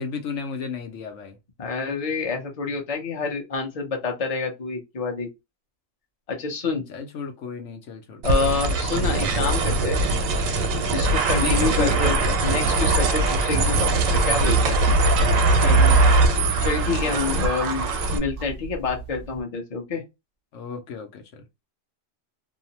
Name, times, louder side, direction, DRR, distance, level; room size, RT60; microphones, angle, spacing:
voice 1, 0.0-1.4 6.9-8.2 11.3-12.4 15.6-16.4 16.8-17.2 20.5-21.4, left 5 dB, 70° left, 1.0 m, -34 dB
voice 2, 1.6-5.3 6.3-6.8 8.2-10.0 10.9-13.9 14.3-14.8 15.7-15.9 16.6-17.9 18.1-20.0, left 4 dB, 35° left, 0.7 m, -27 dB
sound 1, 8.2-18.2, right 2 dB, 90° right, 1.0 m, -21 dB
sound 2, 13.1-19.4, right 5 dB, 60° right, 0.6 m, -34 dB
2.6 x 2.0 x 2.7 m
omnidirectional pair, 1.3 m